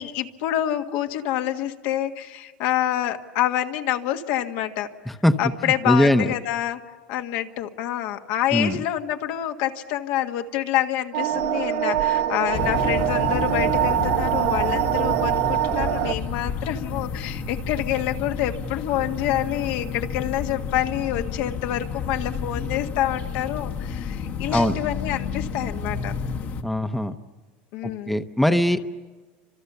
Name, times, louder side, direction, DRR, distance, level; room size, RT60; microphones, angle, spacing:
voice 1, 0.0-4.9 5.4-6.8 7.1-26.1 27.7-28.2, left 12 dB, 70° left, 5 dB, 1.7 m, -27 dB
voice 2, 5.1-5.4 5.6-6.3 8.5-8.8 24.5-24.8 26.6-27.2 27.8-28.9, left 1 dB, 5° left, 8 dB, 0.9 m, -21 dB
sound 1, 11.1-16.1, right 12 dB, 70° right, 1.0 m, -23 dB
sound 2, 12.5-26.6, left 6 dB, 45° left, 1.4 m, -31 dB
29.5 x 26.0 x 6.9 m, 1.3 s
supercardioid pair, 125°, 5 cm